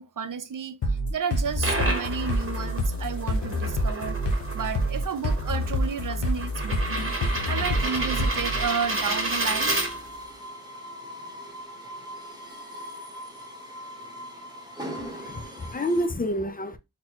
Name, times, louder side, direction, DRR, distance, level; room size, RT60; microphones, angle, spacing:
voice 1, 0.0-4.2 4.5-9.8, right 6 dB, 55° right, 0.5 m, -32 dB
sound 1, 0.8-8.7, left 1 dB, 90° left, 0.7 m, -27 dB
sound 2, 1.3-10.3, right 2 dB, 30° right, 1.0 m, -31 dB
sound 3, 7.0-16.1, equal, 10° right, 1.0 m, -40 dB
voice 2, 15.0-16.8, equal, 20° left, 0.4 m, -29 dB
4.0 x 2.2 x 2.9 m
wide cardioid pair, 45°, 40 cm